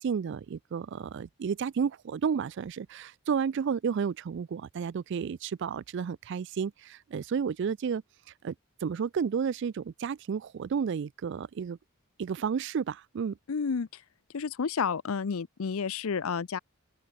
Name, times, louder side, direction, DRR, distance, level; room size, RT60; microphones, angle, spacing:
voice 1, 0.0-8.0 8.4-8.5 8.8-11.8 12.2-13.4, right 6 dB, 55° right, 0.3 m, -31 dB
voice 2, 13.5-14.0 14.3-16.6, left 5 dB, 80° left, 0.6 m, -31 dB
open air
head